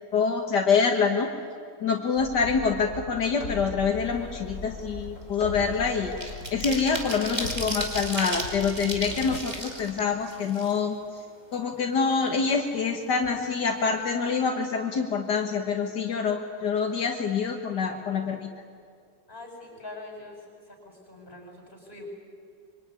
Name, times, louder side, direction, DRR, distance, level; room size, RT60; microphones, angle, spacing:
voice 1, 0.1-1.3 1.8-6.1 6.5-11.0 11.5-18.5, left 5 dB, 75° left, 3 dB, 2.1 m, -26 dB
sound 1, 2.2-9.4, left 2 dB, 50° left, 2.2 m, -39 dB
sound 2, 4.1-4.4 4.7-11.2 11.5-11.6 11.9-12.9 13.2-13.4 13.7-14.0, right 1 dB, 25° right, 2.9 m, -35 dB
voice 2, 19.3-20.4 20.7-22.1, left 2 dB, 30° left, 2 dB, 7.6 m, -44 dB
25.5 x 24.0 x 9.7 m, 2.2 s
omnidirectional pair, 1.8 m